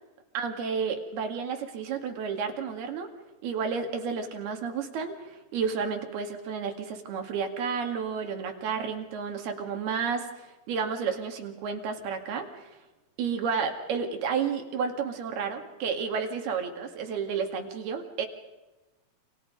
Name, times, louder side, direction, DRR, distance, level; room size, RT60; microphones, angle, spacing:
voice 1, 0.3-3.1 3.4-12.8 13.2-18.3, right 6 dB, 65° right, 4 dB, 4.1 m, -31 dB
29.5 x 27.0 x 5.3 m, 1.1 s
omnidirectional pair, 5.0 m